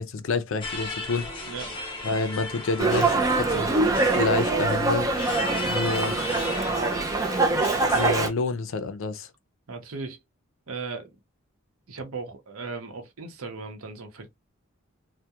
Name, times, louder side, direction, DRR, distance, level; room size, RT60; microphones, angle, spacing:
voice 1, 0.0-1.3 2.0-3.7 4.1-5.1 5.7-6.2 7.9-9.3, left 3 dB, 65° left, 0.5 m, -28 dB
sound 1, 0.6-8.3, left 2 dB, 25° left, 0.8 m, -35 dB
voice 2, 1.4-1.8 9.7-10.2 10.7-11.1 11.9-14.3, right 4 dB, 80° right, 0.8 m, -37 dB
Dog, 2.8-8.3, right 3 dB, 15° right, 0.4 m, -24 dB
2.3 x 2.1 x 2.7 m
head